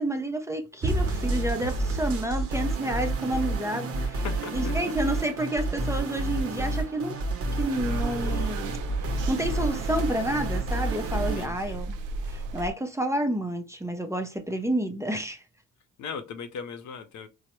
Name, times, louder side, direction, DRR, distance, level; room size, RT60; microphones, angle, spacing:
voice 1, 0.0-4.3 4.5-7.2 7.6-8.7 9.3-11.9 12.3-15.4, right 1 dB, 10° right, 0.5 m, -29 dB
Bowed string instrument, 0.8-3.4, right 3 dB, 30° right, 1.0 m, -37 dB
sound 1, 0.8-11.5, right 2 dB, 50° right, 0.8 m, -29 dB
voice 2, 4.2-4.7 11.4-11.8 16.0-17.3, left 6 dB, 70° left, 0.6 m, -38 dB
sound 2, 7.7-12.7, right 2 dB, 80° right, 0.5 m, -35 dB
4.5 x 2.1 x 2.9 m
cardioid pair, 90°, 31 cm